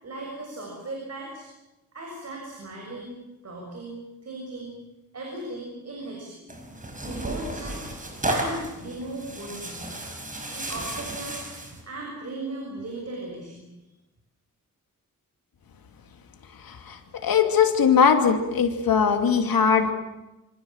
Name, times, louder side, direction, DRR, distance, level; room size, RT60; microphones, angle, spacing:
voice 1, 0.0-1.5 1.9-3.2 3.4-4.7 5.1-6.5 7.0-7.8 8.3-9.9 10.5-11.5 11.8-13.7, right 2 dB, 45° right, 0 dB, 6.8 m, -37 dB
Tearing, 6.5-11.8, right 1 dB, 25° right, 5.3 m, -33 dB
voice 2, 16.6-19.9, left 6 dB, 85° left, 6 dB, 2.9 m, -20 dB
26.5 x 26.0 x 7.4 m, 0.99 s
wide cardioid pair, 165°, 34 cm